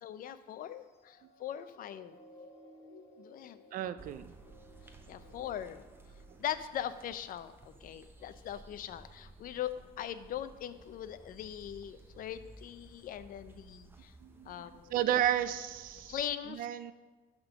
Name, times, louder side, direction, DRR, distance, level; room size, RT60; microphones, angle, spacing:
voice 1, 0.0-2.2 3.2-3.6 5.1-5.8 6.4-14.1 14.5-14.9 16.0-16.7, left 10 dB, 55° left, 13 dB, 0.5 m, -40 dB
sound 1, 0.8-7.5 8.1-8.3, left 1 dB, 40° left, 1.3 m, -58 dB
voice 2, 3.7-4.3 14.2-14.5 14.9-16.1 16.6-16.9, right 11 dB, 55° right, 13 dB, 0.4 m, -32 dB
sound 2, 4.0-16.2, right 2 dB, 15° right, 0.8 m, -56 dB
10.0 x 3.7 x 6.0 m, 1.2 s
cardioid pair, 110°, 17 cm